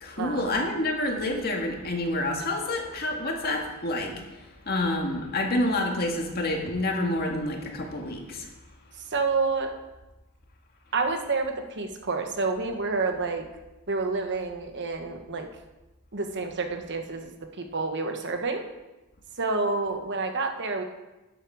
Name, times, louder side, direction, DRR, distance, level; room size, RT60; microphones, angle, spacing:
voice 1, 0.0-8.5, left 1 dB, 45° left, 1 dB, 1.9 m, -28 dB
voice 2, 9.1-9.7 10.9-13.4 13.9-15.5 16.1-17.3 17.6-18.7 19.4-20.8, right 3 dB, 55° right, 5 dB, 1.2 m, -28 dB
12.0 x 9.9 x 4.7 m, 1.1 s
head